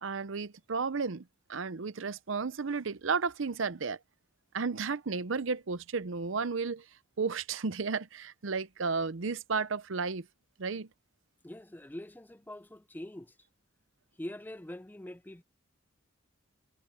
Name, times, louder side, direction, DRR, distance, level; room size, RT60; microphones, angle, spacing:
voice 1, 0.0-1.2 1.5-4.0 4.5-6.8 7.2-10.3 10.6-10.9, right 4 dB, 70° right, 0.7 m, -33 dB
voice 2, 11.4-13.3 14.2-15.4, left 1 dB, 10° left, 0.5 m, -44 dB
head